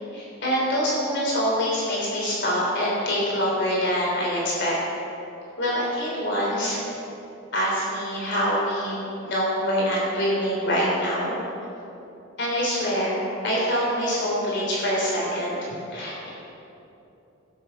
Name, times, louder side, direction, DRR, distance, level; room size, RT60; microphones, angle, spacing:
voice 1, 0.1-4.7 5.6-6.8 7.5-11.3 12.4-16.3, equal, 55° left, -5 dB, 3.3 m, -25 dB
15.5 x 8.2 x 5.6 m, 2.9 s
head